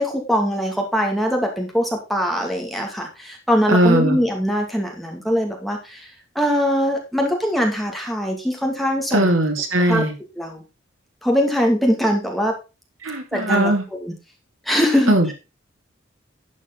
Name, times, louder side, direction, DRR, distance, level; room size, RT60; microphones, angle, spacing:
voice 1, 0.0-6.1 6.4-9.3 9.9-10.0 10.4-10.6 11.2-12.5 13.3-14.1 14.7-15.3, equal, ahead, 1 dB, 2.3 m, -22 dB
voice 2, 3.7-4.2 9.1-10.1 13.0-13.8 15.1-15.3, right 1 dB, 90° right, 3 dB, 3.0 m, -18 dB
11.5 x 7.2 x 4.0 m, 0.29 s
head